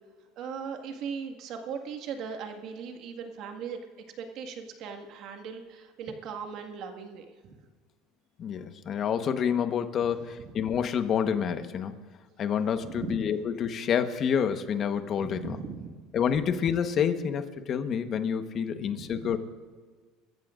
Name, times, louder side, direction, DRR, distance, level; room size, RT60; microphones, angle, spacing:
voice 1, 0.4-3.8 4.2-7.6 10.4-10.5 12.8-13.2 15.2-15.9 18.9-19.4, right 6 dB, 60° right, 4 dB, 1.9 m, -39 dB
voice 2, 8.4-11.9 12.4-15.6 16.1-19.4, left 7 dB, 45° left, 8 dB, 1.2 m, -28 dB
29.0 x 14.5 x 2.6 m, 1.5 s
supercardioid pair, 110°, 0 cm